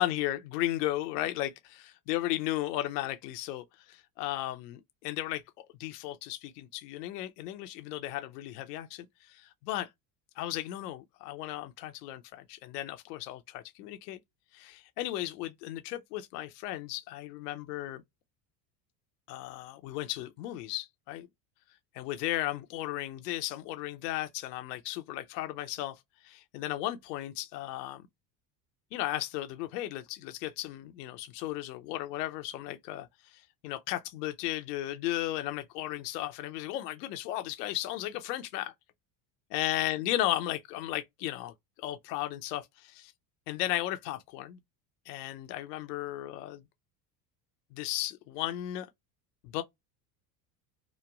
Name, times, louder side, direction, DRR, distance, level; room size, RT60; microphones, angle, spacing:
voice 1, 0.0-9.9 10.4-14.2 14.5-18.0 19.3-21.3 21.9-28.0 28.9-38.7 39.5-41.5 41.8-43.1 43.5-44.6 45.1-46.6 47.7-48.9 49.4-49.6, left 15 dB, 80° left, 0.6 m, -35 dB
2.9 x 2.2 x 2.2 m
supercardioid pair, 95°, 47 cm